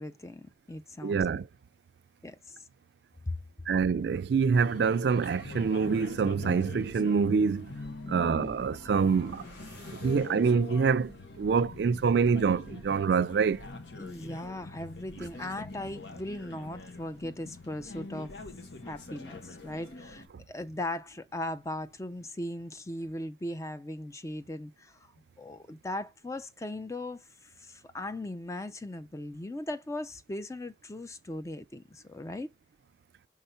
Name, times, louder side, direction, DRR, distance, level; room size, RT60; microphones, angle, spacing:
voice 1, 0.0-1.2 2.2-2.6 3.3-3.4 8.0-8.4 14.0-18.3 18.8-25.1 25.4-32.5, left 1 dB, 15° left, 0.4 m, -38 dB
voice 2, 1.0-1.5 3.7-7.7 8.1-9.4 10.0-13.7 15.2-15.3, right 5 dB, 70° right, 0.3 m, -26 dB
sound 1, 4.5-20.3, left 2 dB, 80° left, 1.1 m, -44 dB
sound 2, 8.3-10.9, equal, 55° left, 3.0 m, -54 dB
5.6 x 3.6 x 5.6 m
head